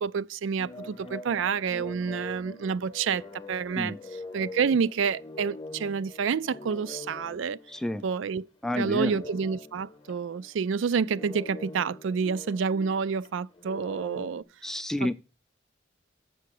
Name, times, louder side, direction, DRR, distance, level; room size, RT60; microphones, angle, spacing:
voice 1, 0.0-3.2 3.5-4.0 4.3-7.6 8.0-8.4 8.8-14.4 15.0-15.1, right 6 dB, 85° right, 0.4 m, -28 dB
sound 1, 0.6-8.4 8.7-14.4, left 2 dB, 25° left, 0.8 m, -44 dB
voice 2, 7.7-8.0 8.6-9.2 14.6-15.1, left 1 dB, 5° left, 0.4 m, -29 dB
7.6 x 6.3 x 6.5 m
head